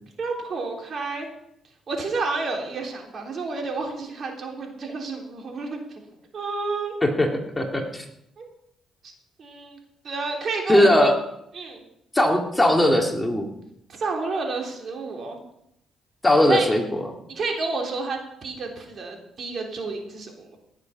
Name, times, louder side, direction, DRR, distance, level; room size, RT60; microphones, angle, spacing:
voice 1, 0.2-1.3 1.9-5.8 6.3-6.9 8.4-8.5 9.4-9.8 10.0-11.1 11.5-11.8 13.9-15.4 16.5-16.7 17.3-20.6, right 3 dB, 50° right, 1 dB, 3.5 m, -30 dB
voice 2, 7.6-8.0 10.7-11.1 12.1-13.5 16.2-17.1, left 1 dB, 10° left, 2 dB, 2.2 m, -19 dB
18.0 x 7.4 x 6.0 m, 0.78 s
cardioid pair, 90°, 0 cm